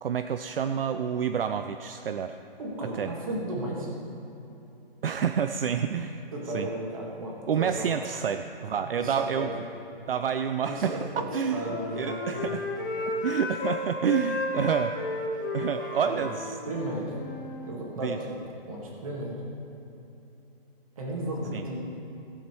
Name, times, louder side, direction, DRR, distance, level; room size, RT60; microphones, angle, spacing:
voice 1, 0.0-2.4 2.8-3.1 5.0-6.7 7.5-9.5 10.1-11.1 11.3-12.6 13.1-15.1 15.5-16.6 18.0-18.2 21.5-21.6, right 7 dB, 70° right, 8 dB, 0.5 m, -29 dB
voice 2, 2.6-4.0 6.3-7.9 9.0-9.5 10.7-12.6 16.0-16.3 16.7-17.2 17.6-18.4 18.7-19.4 21.0-21.7, right 1 dB, 35° right, -2 dB, 2.1 m, -34 dB
Wind instrument woodwind instrument, 11.1-13.8 14.1-17.7, left 2 dB, 20° left, 0.6 m, -34 dB
16.5 x 7.3 x 4.6 m, 3.0 s
hypercardioid pair, 175°, 30 cm